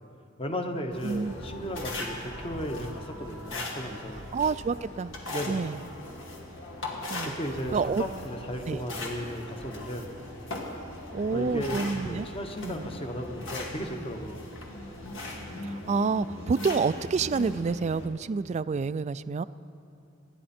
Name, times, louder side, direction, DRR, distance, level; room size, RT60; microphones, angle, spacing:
voice 1, 0.4-4.3 5.3-5.7 7.2-10.2 11.3-14.5, equal, 30° left, 5 dB, 1.1 m, -35 dB
sound 1, 0.9-18.1, left 1 dB, 70° left, 2.1 m, -39 dB
voice 2, 1.0-1.3 4.3-5.1 5.5-5.8 7.1-7.4 7.7-8.0 8.7-8.8 11.1-12.3 12.7-12.9 15.6-19.4, right 5 dB, 35° right, 16 dB, 0.3 m, -28 dB
29.5 x 10.0 x 4.3 m, 2.6 s
head